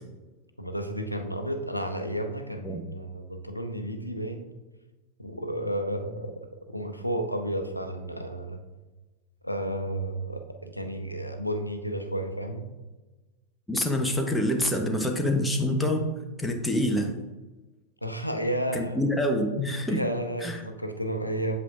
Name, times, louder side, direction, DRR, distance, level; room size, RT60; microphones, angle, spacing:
voice 1, 0.6-4.5 5.2-6.3 6.7-8.6 9.4-12.7 18.0-19.0 19.8-21.6, right 1 dB, 90° left, 6 dB, 0.7 m, -32 dB
voice 2, 13.7-16.0 16.4-17.1 18.7-20.0 20.4-20.6, left 1 dB, 5° left, 2 dB, 0.9 m, -26 dB
8.0 x 7.5 x 2.4 m, 1.2 s
figure-of-eight pair, 90°, 0 cm